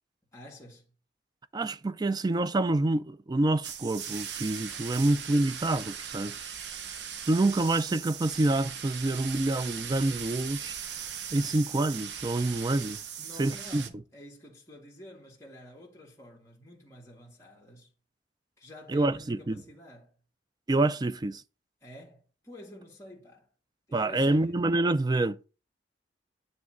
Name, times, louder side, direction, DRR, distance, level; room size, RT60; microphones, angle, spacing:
voice 1, 0.3-0.9 13.2-17.9 18.6-20.2 21.8-23.5 23.9-24.6, left 1 dB, 15° left, 1.8 m, -49 dB
voice 2, 1.5-6.4 7.3-10.8 11.3-13.0 13.4-13.8 18.9-19.6 20.7-21.4 23.9-25.4, right 2 dB, 25° right, 0.4 m, -27 dB
sound 1, 3.6-13.9, right 8 dB, 75° right, 0.9 m, -39 dB
9.5 x 3.3 x 6.0 m
head